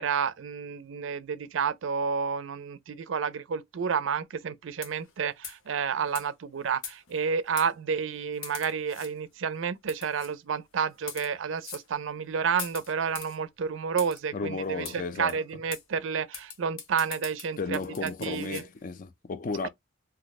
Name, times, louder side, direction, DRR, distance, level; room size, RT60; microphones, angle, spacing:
voice 1, 0.0-18.6, right 6 dB, 75° right, 0.4 m, -30 dB
sound 1, 4.7-5.1 5.4-5.7 6.1-6.3 6.8-7.2 7.6-7.7 8.4-9.1 9.9-10.3 10.9-11.3 11.6-11.9 12.6-13.4 14.0-14.2 14.8-15.0 15.3-15.4 15.7-15.8 16.3-18.7, left 7 dB, 90° left, 0.8 m, -41 dB
voice 2, 14.3-15.4 17.6-19.7, left 4 dB, 40° left, 0.4 m, -34 dB
2.7 x 2.1 x 4.0 m
head